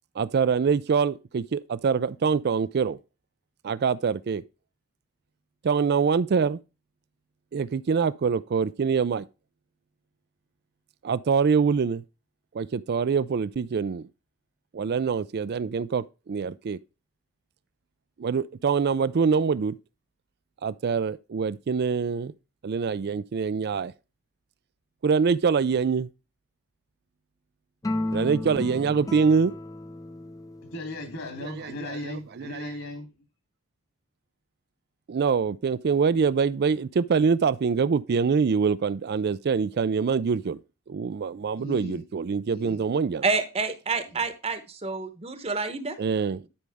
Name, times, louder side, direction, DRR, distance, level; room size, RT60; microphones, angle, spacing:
voice 1, 0.2-3.0 3.6-4.4 5.6-6.6 7.5-9.3 11.0-12.0 12.5-14.1 14.7-16.8 18.2-19.8 20.6-22.3 22.6-23.9 25.0-26.1 28.1-29.5 31.4-32.6 35.1-40.6 40.9-43.2 46.0-46.4, right 5 dB, 45° right, 0.4 m, -25 dB
sound 1, 27.8-32.3, left 1 dB, 15° left, 0.6 m, -35 dB
voice 2, 30.6-33.1 41.6-42.0 42.5-42.8 44.1-44.2, left 1 dB, 65° left, 3.3 m, -37 dB
voice 3, 43.2-46.0, right 4 dB, 30° right, 1.0 m, -28 dB
11.5 x 5.3 x 3.5 m
head